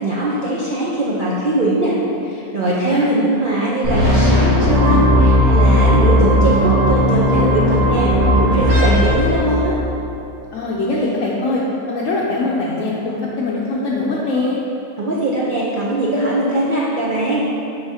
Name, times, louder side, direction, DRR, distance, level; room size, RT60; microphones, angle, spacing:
voice 1, 0.0-2.0 2.3-9.8 15.0-17.5, right 1 dB, 50° right, -6 dB, 0.6 m, -20 dB
voice 2, 2.6-3.0 10.5-11.6 11.9-14.6, left 2 dB, 65° left, -6 dB, 1.0 m, -22 dB
sound 1, 3.8-10.0, left 1 dB, 80° right, 2.2 m, -15 dB
10.0 x 3.6 x 2.8 m, 2.8 s
omnidirectional pair, 1.6 m